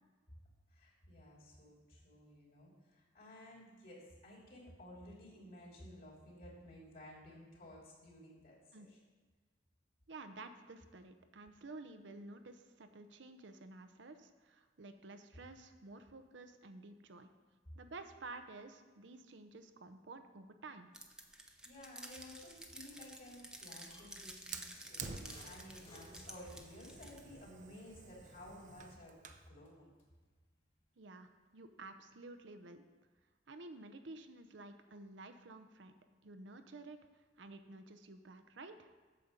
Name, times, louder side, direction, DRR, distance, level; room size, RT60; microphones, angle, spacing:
voice 1, 0.7-9.0 21.6-29.2 29.5-29.9, left 1 dB, 55° left, -3 dB, 2.9 m, -55 dB
voice 2, 10.1-17.3 17.7-20.9 31.0-32.8 33.5-35.9 36.2-38.9, right 2 dB, 80° right, 8 dB, 0.7 m, -52 dB
sound 1, 20.9-27.2, right 1 dB, 5° right, 0.7 m, -52 dB
sound 2, 22.3-30.4 30.7-31.9, left 1 dB, 30° left, 1.9 m, -65 dB
Fire, 24.5-29.5, right 5 dB, 45° right, 0.6 m, -51 dB
8.5 x 7.0 x 5.2 m, 1.5 s
head